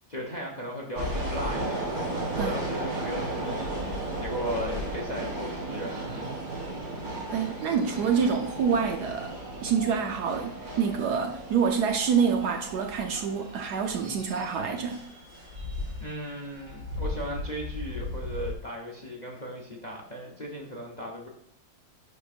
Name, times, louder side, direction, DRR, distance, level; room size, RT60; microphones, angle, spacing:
voice 1, 0.1-2.0 2.3-6.7 16.0-21.3, equal, 35° left, 0 dB, 0.7 m, -37 dB
sound 1, 1.0-18.5, right 1 dB, 50° right, 1.9 m, -35 dB
voice 2, 7.3-9.3 9.6-15.0, right 6 dB, 65° right, 4 dB, 1.1 m, -27 dB
10.5 x 4.5 x 2.5 m, 0.72 s
omnidirectional pair, 2.1 m